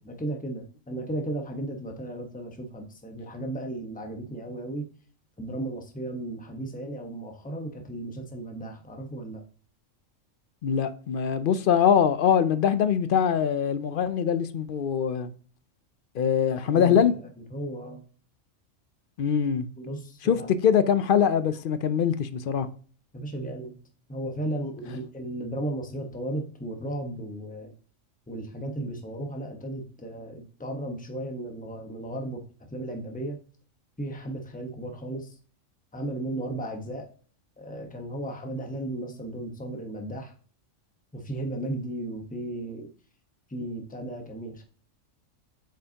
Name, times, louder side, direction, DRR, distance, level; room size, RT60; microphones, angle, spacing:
voice 1, 0.0-4.9 5.4-9.4 16.7-17.2 17.5-18.0 19.8-20.5 23.1-23.8 24.1-27.7 28.3-32.4 32.7-33.4 34.0-35.4 35.9-37.1 37.6-40.3 41.1-42.9 43.5-44.6, right 1 dB, 5° left, 1.0 m, -35 dB
voice 2, 10.6-15.3 16.1-17.1 19.2-19.7 20.2-20.4 20.6-22.7, left 8 dB, 60° left, 0.6 m, -23 dB
8.7 x 5.5 x 2.9 m
omnidirectional pair, 1.3 m